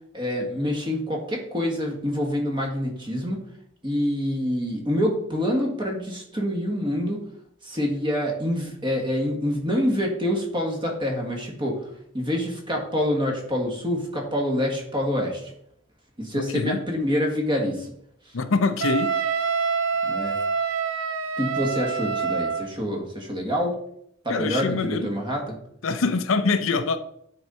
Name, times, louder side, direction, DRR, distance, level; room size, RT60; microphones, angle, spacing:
voice 1, 0.1-3.4 3.8-7.2 7.6-11.8 12.1-15.5 16.2-17.9 20.0-20.4 21.4-23.7 24.2-25.6, equal, 25° right, 0 dB, 1.6 m, -26 dB
voice 2, 16.3-16.8 18.3-19.2 24.3-25.1 25.8-27.0, left 4 dB, 75° left, 10 dB, 0.6 m, -24 dB
Wind instrument woodwind instrument, 18.8-22.7, right 5 dB, 80° right, 0.6 m, -26 dB
9.2 x 3.9 x 4.4 m, 0.69 s
head